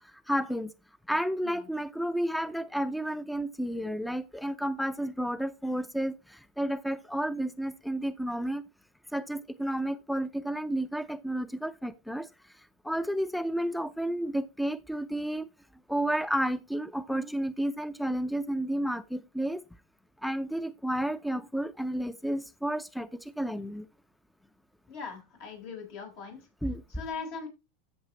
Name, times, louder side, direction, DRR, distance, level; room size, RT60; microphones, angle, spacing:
voice 1, 0.3-0.7 1.1-8.6 9.1-12.3 12.8-15.5 15.9-19.6 20.2-23.1 23.4-23.9 26.6-26.8, right 1 dB, ahead, 0.5 m, -31 dB
voice 2, 24.9-26.4 26.9-27.5, left 5 dB, 70° left, 5.6 m, -40 dB
14.0 x 6.6 x 3.1 m
hypercardioid pair, 110°, 0 cm